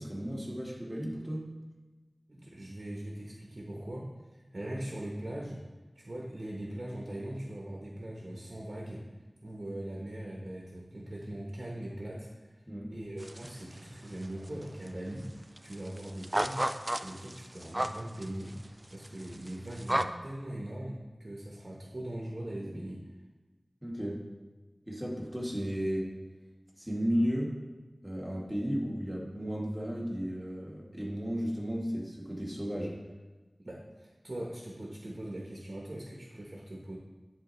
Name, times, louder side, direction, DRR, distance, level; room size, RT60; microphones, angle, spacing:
voice 1, 0.0-1.5 12.7-12.9 23.8-24.3 24.9-26.1 26.8-27.6 28.0-33.0, equal, 10° right, -4 dB, 1.8 m, -34 dB
voice 2, 2.3-5.6 5.9-9.0 9.4-12.3 12.9-15.3 15.6-18.6 18.9-23.0 33.6-37.0, right 1 dB, 55° right, -2 dB, 1.1 m, -41 dB
sound 1, 13.2-13.8 14.1-14.9 15.2-15.3 15.6-20.0, right 1 dB, 25° right, 0.3 m, -33 dB
10.5 x 3.9 x 3.2 m, 1.2 s
wide cardioid pair, 55°, 0 cm